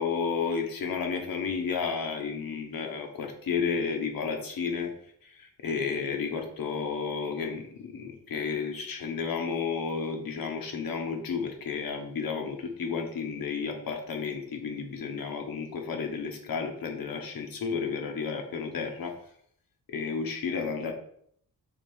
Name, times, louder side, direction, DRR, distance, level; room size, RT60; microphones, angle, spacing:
voice 1, 0.0-4.9 5.2-19.1 19.9-20.9, left 5 dB, 85° left, 4 dB, 1.3 m, -32 dB
5.1 x 3.9 x 5.6 m, 0.66 s
wide cardioid pair, 175°, 34 cm